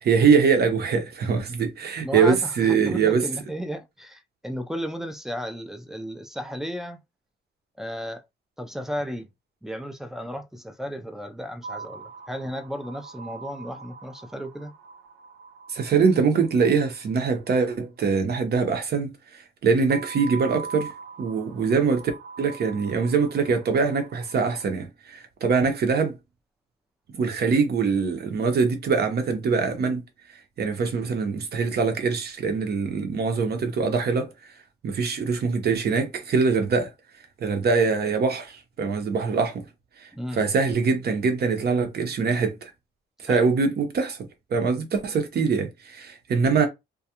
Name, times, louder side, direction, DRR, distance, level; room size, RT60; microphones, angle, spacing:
voice 1, 0.0-3.2 15.7-20.9 21.2-22.0 22.4-26.2 27.1-30.0 30.6-34.5 34.8-36.9 37.4-39.7 40.0-42.7 43.2-46.7, right 5 dB, 55° right, 0.8 m, -23 dB
voice 2, 2.0-7.0 7.8-8.2 8.6-9.3 9.6-14.7 40.1-40.5 43.3-43.5, equal, ahead, 0.4 m, -34 dB
sound 1, 11.6-17.0 19.9-24.7, right 5 dB, 85° right, 0.5 m, -42 dB
2.4 x 2.3 x 2.8 m
cardioid pair, 90°, 20 cm